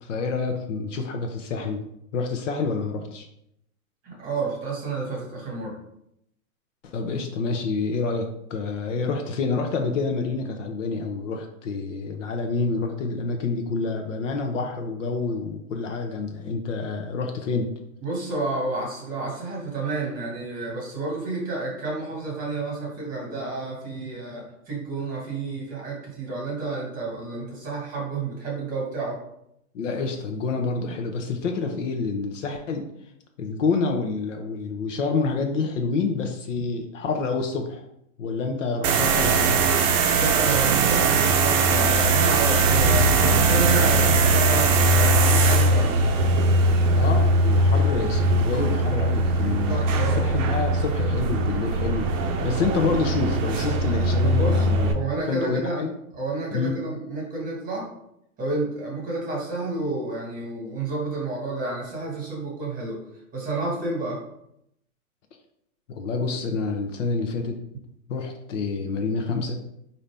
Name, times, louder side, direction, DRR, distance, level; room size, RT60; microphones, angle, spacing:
voice 1, 0.0-1.8 2.1-3.3 6.8-17.7 29.7-32.9 33.4-37.8 38.2-39.6 46.8-54.9 55.3-55.9 56.5-56.7 65.9-67.6 68.1-69.6, left 4 dB, 55° left, 3 dB, 0.6 m, -28 dB
voice 2, 4.0-5.8 18.0-29.2 40.2-46.0 49.7-50.2 54.2-54.6 54.9-55.8 56.1-57.9 58.4-63.0 63.3-64.2, right 3 dB, 20° right, -3 dB, 1.3 m, -30 dB
sound 1, 38.8-54.9, right 2 dB, 55° right, 0.6 m, -20 dB
sound 2, 42.8-45.7, left 2 dB, 35° left, 1.0 m, -30 dB
4.0 x 2.7 x 3.3 m, 0.77 s
hypercardioid pair, 135°, 45 cm